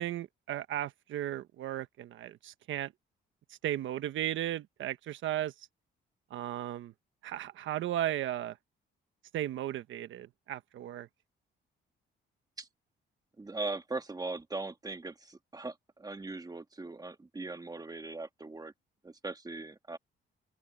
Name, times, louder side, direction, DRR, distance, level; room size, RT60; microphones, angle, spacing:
voice 1, 0.0-2.9 3.5-5.7 6.3-6.9 7.2-8.6 9.3-11.1, right 12 dB, 80° right, 1.1 m, -35 dB
voice 2, 13.4-18.7 19.0-20.0, right 3 dB, 20° right, 1.9 m, -40 dB
open air
cardioid pair, 90°, 20 cm